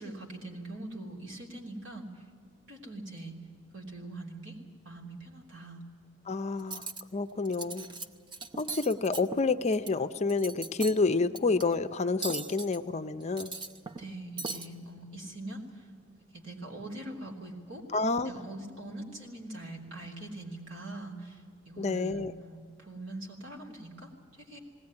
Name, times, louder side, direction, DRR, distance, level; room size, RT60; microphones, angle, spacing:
voice 1, 0.0-2.2 2.7-3.3 3.7-4.6 4.8-5.8 14.0-15.9 16.3-17.8 18.2-24.6, right 2 dB, 70° right, 0 dB, 3.3 m, -43 dB
voice 2, 6.3-7.9 8.6-13.5 17.9-18.3 21.8-22.3, left 3 dB, 35° left, 10 dB, 0.5 m, -29 dB
Cutlery silverware, 6.6-7.0 7.5-8.1 8.3-9.9 10.3-11.0 11.4-11.6 12.2-12.8 13.2-14.1 14.4-14.7, right 3 dB, 25° right, 0.8 m, -39 dB
20.0 x 17.5 x 9.7 m, 2.1 s
head